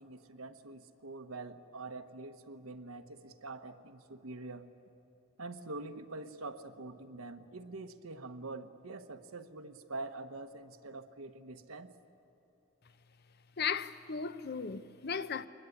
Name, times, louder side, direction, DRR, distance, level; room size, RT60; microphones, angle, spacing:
voice 1, 0.0-4.7 5.4-11.9, right 2 dB, 75° right, 1.2 m, -45 dB
voice 2, 13.6-15.5, left 6 dB, 45° left, 0.7 m, -36 dB
24.0 x 21.0 x 9.8 m
head